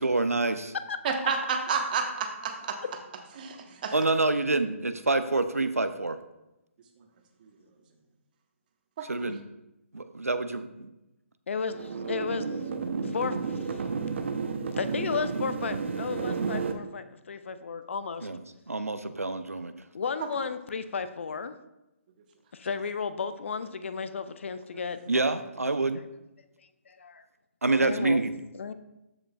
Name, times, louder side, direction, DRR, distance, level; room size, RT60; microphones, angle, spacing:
voice 1, 0.0-0.7 3.9-6.2 9.0-9.4 9.9-10.9 18.2-18.4 18.7-19.7 25.1-26.0 27.6-28.3, right 2 dB, 90° right, 10 dB, 0.6 m, -27 dB
voice 2, 1.0-2.8 3.4-3.9 9.0-9.1, right 5 dB, 40° right, 3 dB, 1.2 m, -30 dB
voice 3, 11.5-12.6 13.0-13.8 14.8-18.3 19.9-21.5 22.5-25.0 26.9-27.2 27.7-28.2 28.5-28.7, left 5 dB, 55° left, 11 dB, 0.6 m, -33 dB
sound 1, 11.7-16.7, right 5 dB, 55° right, 0.8 m, -32 dB
13.5 x 5.2 x 2.4 m, 0.94 s
figure-of-eight pair, 140°, 8 cm